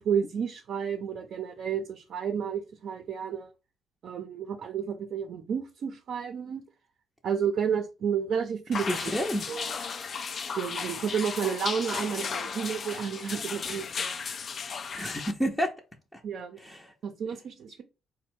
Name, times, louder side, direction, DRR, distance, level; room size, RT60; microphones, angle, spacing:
voice 1, 0.0-3.5 4.0-6.6 7.2-9.7 10.6-14.3 16.2-16.6 17.0-17.8, right 7 dB, 60° right, 0.6 m, -31 dB
sound 1, 8.7-15.3, left 5 dB, 50° left, 0.4 m, -35 dB
voice 2, 8.9-9.5 14.9-15.7 16.1-16.2 16.6-16.9, equal, 5° left, 0.6 m, -30 dB
4.1 x 2.1 x 4.4 m
cardioid pair, 95°, 0 cm